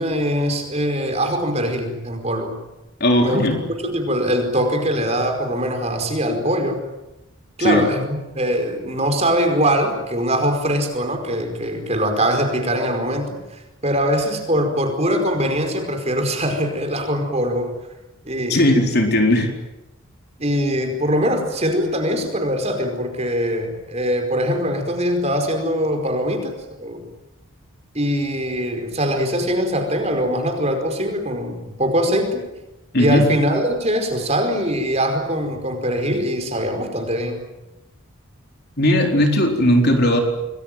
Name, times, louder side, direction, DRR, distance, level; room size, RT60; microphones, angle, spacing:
voice 1, 0.0-2.6 3.2-3.5 3.8-6.8 7.6-17.7 18.2-18.7 20.4-27.0 27.9-32.4 33.0-37.4, equal, 30° right, 5 dB, 5.0 m, -22 dB
voice 2, 3.0-3.6 7.6-7.9 18.5-19.5 32.9-33.2 38.8-40.2, left 1 dB, 45° left, 3 dB, 4.2 m, -17 dB
27.0 x 21.5 x 9.3 m, 0.98 s
head